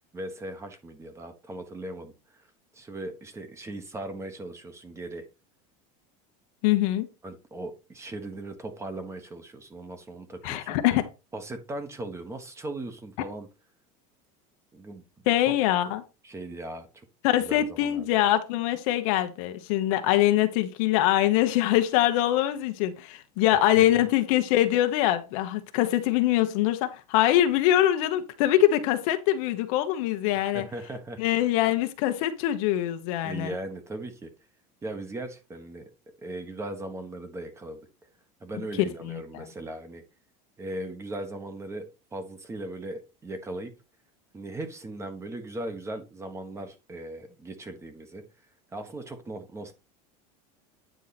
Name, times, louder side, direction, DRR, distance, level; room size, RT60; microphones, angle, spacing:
voice 1, 0.1-2.5 2.7-5.2 7.2-10.8 11.3-13.5 14.7-15.0 16.2-17.0 17.4-18.1 23.5-24.0 30.3-31.2 33.2-34.3 34.8-35.9 36.2-37.8 38.4-40.0 40.6-43.7 44.3-48.2 48.7-49.7, right 2 dB, 15° right, 1.3 m, -38 dB
voice 2, 6.6-7.1 10.4-11.1 15.3-16.0 17.2-30.7 31.2-33.5 39.0-39.5, left 13 dB, 70° left, 1.2 m, -23 dB
9.2 x 4.7 x 4.2 m
supercardioid pair, 150°, 18 cm